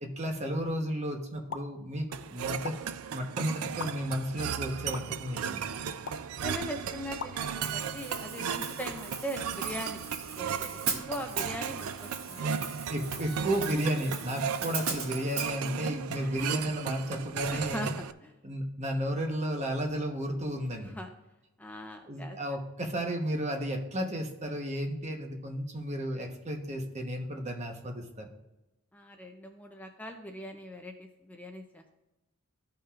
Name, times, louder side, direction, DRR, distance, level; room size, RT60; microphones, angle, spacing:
voice 1, 0.0-2.8 3.1-5.7 12.9-17.9 18.4-20.9 22.1-28.3, equal, 35° right, 3 dB, 1.1 m, -33 dB
sound 1, 1.5-1.7 2.6-2.7 3.8-3.9 4.9-5.0 6.1-6.3 7.2-7.3, left 5 dB, 65° left, 0.6 m, -37 dB
sound 2, 2.1-18.1, right 7 dB, 85° right, 0.4 m, -36 dB
voice 2, 6.4-10.0 10.4-10.7 11.1-12.6 16.2-16.3 16.6-16.7 17.5-18.3 20.8-21.1 21.6-22.4 28.9-31.9, equal, 5° left, 4 dB, 0.5 m, -40 dB
Hi-hat, 7.6-15.5, right 5 dB, 70° right, 1.4 m, -39 dB
14.0 x 5.7 x 2.5 m, 0.99 s
head